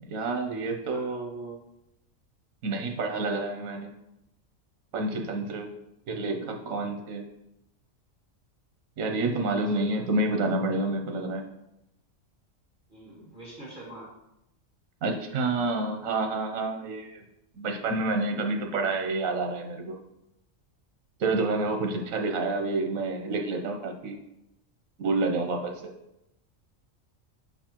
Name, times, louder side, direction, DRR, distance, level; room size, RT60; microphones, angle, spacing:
voice 1, 0.1-1.6 2.6-3.9 4.9-5.7 6.1-7.2 9.0-11.4 15.0-17.2 17.6-20.0 21.2-24.2 25.0-25.9, right 2 dB, 85° right, 4 dB, 1.2 m, -29 dB
voice 2, 9.7-10.0 12.9-14.1, right 1 dB, 40° right, -5 dB, 1.6 m, -45 dB
6.9 x 5.3 x 2.9 m, 0.87 s
omnidirectional pair, 1.4 m